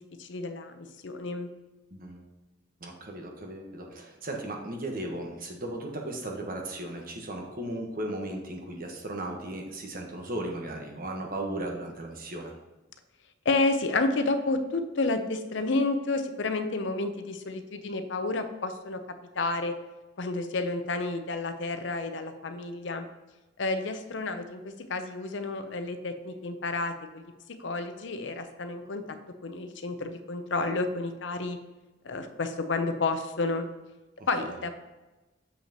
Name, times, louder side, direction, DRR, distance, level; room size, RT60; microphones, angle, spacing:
voice 1, 0.2-1.5 13.4-19.0 19.3-19.7 20.2-23.1 23.6-27.3 27.6-29.0 29.4-31.6 32.0-33.7 34.3-34.7, left 3 dB, 65° left, 8 dB, 0.6 m, -30 dB
voice 2, 1.9-2.3 2.8-12.5 34.2-34.5, right 1 dB, 50° right, 1 dB, 1.2 m, -36 dB
7.1 x 5.7 x 2.9 m, 1.1 s
head